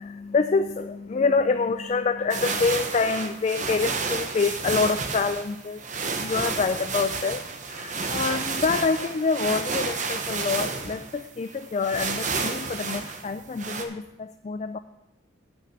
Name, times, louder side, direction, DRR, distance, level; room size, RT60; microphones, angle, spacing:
voice 1, 0.0-5.8 6.1-14.8, left 4 dB, 35° left, 9 dB, 0.3 m, -26 dB
sound 1, 2.3-13.8, right 4 dB, 40° right, 0.8 m, -31 dB
8.5 x 6.2 x 6.4 m, 0.92 s
head